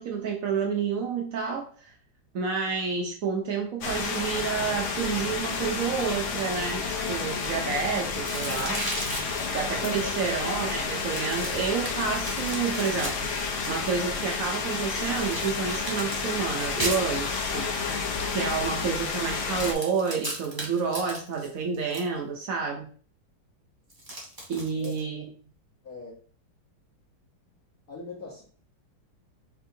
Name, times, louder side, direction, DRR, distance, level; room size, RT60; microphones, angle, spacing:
voice 1, 0.0-1.9 2.3-8.9 9.5-17.7 18.3-22.9 24.5-25.2, right 5 dB, 80° right, 1 dB, 0.7 m, -29 dB
sound 1, 3.8-19.7, left 4 dB, 80° left, 1.7 m, -30 dB
Ice organic crack creak - Frozen vegetable, 8.2-9.6 11.0-13.9 15.1-17.6 19.4-22.1 23.9-25.0, right 1 dB, 15° right, 0.7 m, -37 dB
voice 2, 9.5-10.3 24.7-25.0 25.8-26.1 27.9-28.4, left 4 dB, 50° left, -5 dB, 1.4 m, -41 dB
5.5 x 3.5 x 2.7 m, 0.43 s
omnidirectional pair, 2.3 m